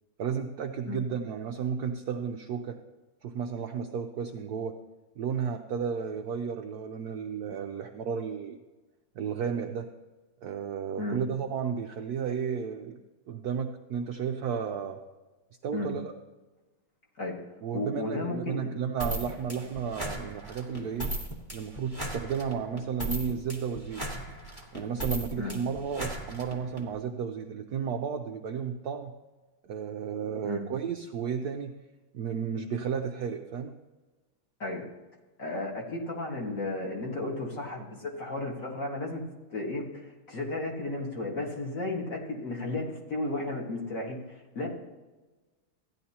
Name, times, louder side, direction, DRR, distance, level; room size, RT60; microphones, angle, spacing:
voice 1, 0.2-2.8 3.2-4.8 5.2-8.6 9.1-9.9 10.4-13.0 13.3-15.0 15.6-16.1 17.6-21.1 21.5-24.0 24.7-29.1 29.6-31.7 32.1-33.8, right 7 dB, 85° right, 4 dB, 0.8 m, -33 dB
voice 2, 17.7-18.8 25.4-25.5 30.4-30.6 34.6-34.8 35.4-39.2 39.5-44.7, left 2 dB, 40° left, -1 dB, 1.9 m, -34 dB
sound 1, 19.0-26.8, right 1 dB, 15° left, 1.2 m, -36 dB
15.0 x 10.0 x 2.9 m, 1.2 s
omnidirectional pair, 2.4 m